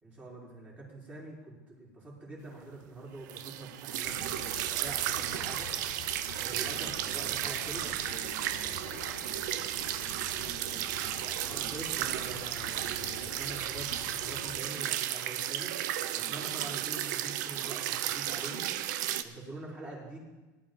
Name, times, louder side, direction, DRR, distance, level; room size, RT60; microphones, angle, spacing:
voice 1, 0.0-5.7 6.3-7.8 11.2-15.7 16.1-18.7 19.2-20.2, right 2 dB, 15° right, -5 dB, 4.4 m, -45 dB
sound 1, 3.3-19.2, right 12 dB, 75° right, 0.7 m, -34 dB
sound 2, 4.0-14.6, left 10 dB, 55° left, 0.9 m, -48 dB
voice 2, 6.7-12.4 16.1-16.6, right 4 dB, 55° right, -10 dB, 4.9 m, -53 dB
18.5 x 11.0 x 3.9 m, 1.1 s
supercardioid pair, 145°, 10 cm